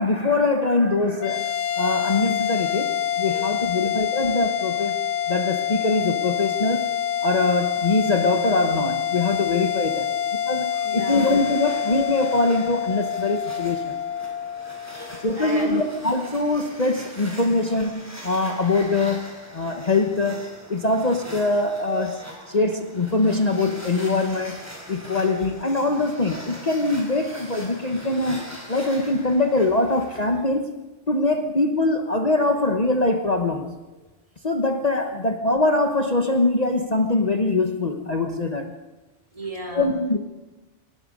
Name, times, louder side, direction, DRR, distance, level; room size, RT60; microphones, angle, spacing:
voice 1, 0.0-1.5 1.8-5.0 5.3-6.9 7.2-10.1 10.4-14.0 15.2-22.1 22.5-24.6 24.9-28.4 28.7-33.7 34.4-38.7 39.7-40.2, left 2 dB, 35° left, 5 dB, 1.2 m, -23 dB
sound 1, 1.2-15.8, left 9 dB, 80° left, 1.5 m, -27 dB
voice 2, 10.7-11.3 13.5-13.6 14.5-15.9 21.9-22.0 39.3-39.9, right 1 dB, 30° right, 0 dB, 3.6 m, -35 dB
sound 2, 11.1-30.4, equal, 15° right, 4.4 m, -42 dB
25.5 x 19.5 x 5.4 m, 1.1 s
omnidirectional pair, 1.2 m